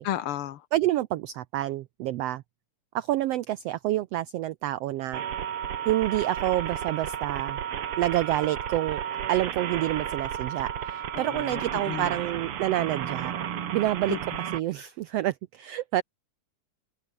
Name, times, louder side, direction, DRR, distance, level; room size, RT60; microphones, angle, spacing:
voice 1, 0.0-0.6 11.1-12.1 14.1-14.2, left 12 dB, 65° left, 1.5 m, -33 dB
voice 2, 0.7-2.4 2.9-5.2 5.8-7.6 8.0-9.0 9.3-13.3 13.7-14.2 14.5-16.0, right 14 dB, 85° right, 1.4 m, -28 dB
sound 1, 5.1-14.6, right 9 dB, 50° right, 2.2 m, -33 dB
open air
omnidirectional pair, 3.6 m